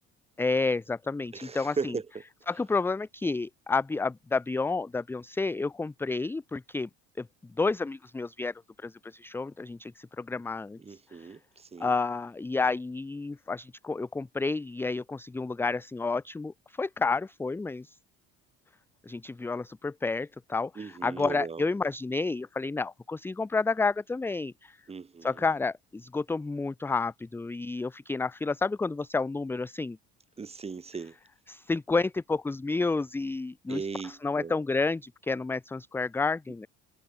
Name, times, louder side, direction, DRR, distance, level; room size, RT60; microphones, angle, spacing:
voice 1, 0.4-1.9 2.5-6.9 7.2-7.3 7.6-11.3 11.8-18.0 19.1-24.8 25.2-30.0 31.5-36.7, left 3 dB, 5° left, 0.5 m, -30 dB
voice 2, 1.3-2.1 10.8-11.9 20.7-21.7 24.9-25.4 30.4-31.2 33.7-34.6, right 5 dB, 20° right, 4.9 m, -37 dB
cardioid pair, 155°, 30 cm